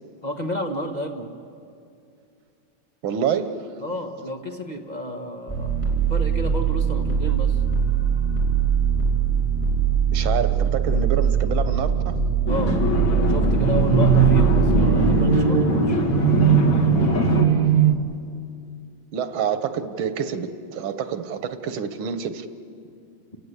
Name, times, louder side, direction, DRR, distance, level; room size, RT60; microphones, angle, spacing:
voice 1, 0.2-1.3 3.8-5.8 6.1-7.6 12.4-12.8 13.1-16.0, equal, 25° left, 3 dB, 1.3 m, -31 dB
voice 2, 3.0-3.6 10.1-12.2 19.1-22.5, right 7 dB, 90° right, 10 dB, 1.9 m, -27 dB
sound 1, 5.5-15.3, right 7 dB, 5° right, 3.6 m, -22 dB
sound 2, 12.5-17.5, left 2 dB, 75° left, 2.9 m, -23 dB
sound 3, 12.6-17.9, right 8 dB, 55° right, 1.2 m, -20 dB
29.5 x 18.0 x 8.3 m, 2.4 s
omnidirectional pair, 2.2 m